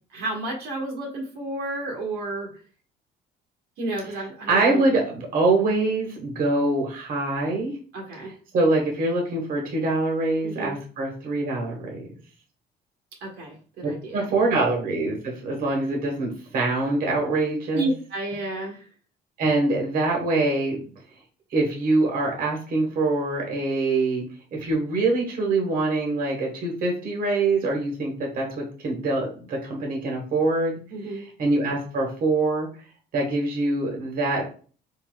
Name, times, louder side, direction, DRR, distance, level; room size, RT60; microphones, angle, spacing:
voice 1, 0.1-2.5 3.8-4.9 7.9-8.3 10.4-10.8 13.2-14.6 17.7-18.9 30.9-31.2, right 2 dB, 80° right, -1 dB, 1.3 m, -31 dB
voice 2, 4.1-7.7 8.5-12.0 13.8-17.9 19.4-20.8 21.5-24.2 24.5-30.8 31.1-32.7 33.1-34.5, right 2 dB, 55° right, 0 dB, 1.2 m, -24 dB
4.1 x 3.9 x 2.2 m, 0.41 s
cardioid pair, 110°, 17 cm